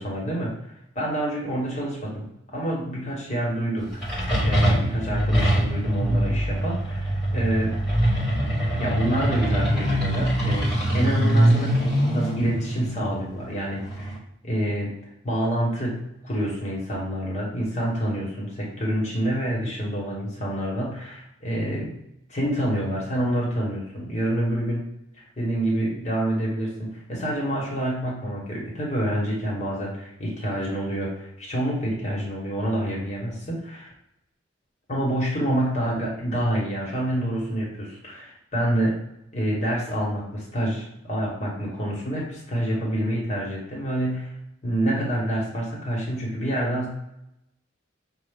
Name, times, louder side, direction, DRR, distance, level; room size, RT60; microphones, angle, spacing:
voice 1, 0.0-2.3 2.5-7.8 8.8-14.2 14.4-14.9 15.2-21.9 22.3-24.9 25.4-33.9 34.9-39.0 39.3-44.3 44.6-46.9, right 1 dB, 35° left, -3 dB, 1.2 m, -27 dB
sound 1, 3.8-14.2, right 1 dB, ahead, 1.6 m, -23 dB
5.6 x 2.4 x 3.5 m, 0.82 s
head